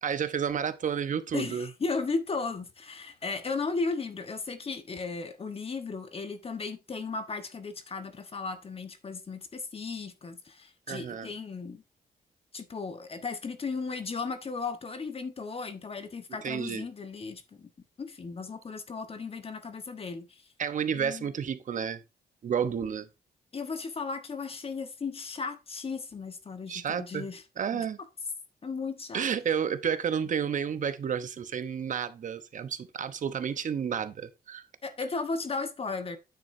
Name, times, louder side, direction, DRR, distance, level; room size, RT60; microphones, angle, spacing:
voice 1, 0.0-1.7 10.9-11.3 16.4-16.9 20.6-22.0 22.4-23.1 26.7-27.3 27.6-28.0 29.1-34.6, right 7 dB, 50° right, 0.9 m, -31 dB
voice 2, 1.3-11.8 12.5-17.7 18.0-20.4 20.9-21.3 23.5-27.4 27.7-27.8 28.6-29.3 34.8-36.2, left 4 dB, 35° left, 1.3 m, -35 dB
9.5 x 7.5 x 2.7 m
cardioid pair, 110°, 16 cm